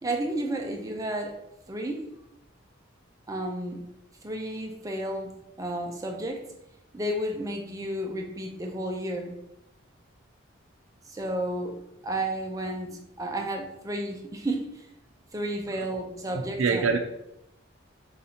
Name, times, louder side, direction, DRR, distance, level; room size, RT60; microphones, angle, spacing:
voice 1, 0.0-1.4 1.7-2.1 3.3-3.9 4.2-6.4 6.9-9.4 11.1-11.8 12.0-14.9 15.3-16.9, right 1 dB, 15° right, 2 dB, 0.5 m, -32 dB
voice 2, 16.2-17.0, right 4 dB, 80° right, 2 dB, 0.4 m, -25 dB
4.1 x 3.9 x 2.8 m, 0.82 s
head